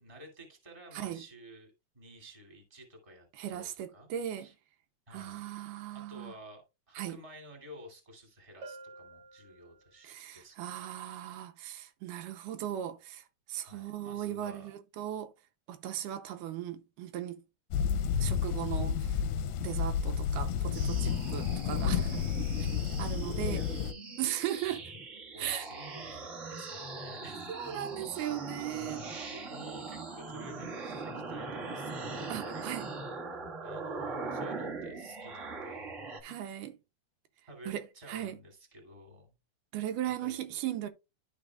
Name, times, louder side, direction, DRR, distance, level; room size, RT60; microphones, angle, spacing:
voice 1, 0.0-4.1 4.4-4.5 5.1-5.5 5.9-10.7 13.6-14.7 23.5-23.7 25.3-28.3 28.5-32.8 33.6-35.9 36.3-36.6 37.5-39.3 40.2-40.4, right 1 dB, 10° right, 1.9 m, -52 dB
voice 2, 3.3-4.5 5.1-6.3 7.0-7.2 10.0-15.3 15.7-17.4 18.2-19.2 19.6-22.3 23.0-23.7 24.2-24.9 25.4-25.7 27.5-29.0 32.3-32.9 36.2-36.8 37.7-38.4 39.7-40.9, right 11 dB, 85° right, 2.3 m, -37 dB
Bell, 8.6-10.2, right 3 dB, 70° right, 1.9 m, -50 dB
sound 1, 17.7-23.9, left 7 dB, 80° left, 1.9 m, -31 dB
sound 2, 20.7-36.2, right 3 dB, 50° right, 0.8 m, -41 dB
12.0 x 4.9 x 2.3 m
omnidirectional pair, 3.7 m